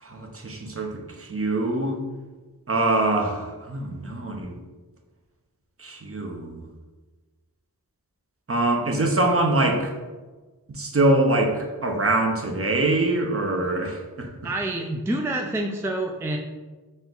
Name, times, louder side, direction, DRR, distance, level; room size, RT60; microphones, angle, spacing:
voice 1, 0.0-2.0 2.7-4.5 5.8-6.6 8.5-10.0 10.7-14.3, right 2 dB, 40° right, 2 dB, 0.7 m, -24 dB
voice 2, 14.4-16.4, right 1 dB, 5° right, 2 dB, 0.3 m, -27 dB
4.2 x 2.3 x 3.8 m, 1.3 s
cardioid pair, 40°, 37 cm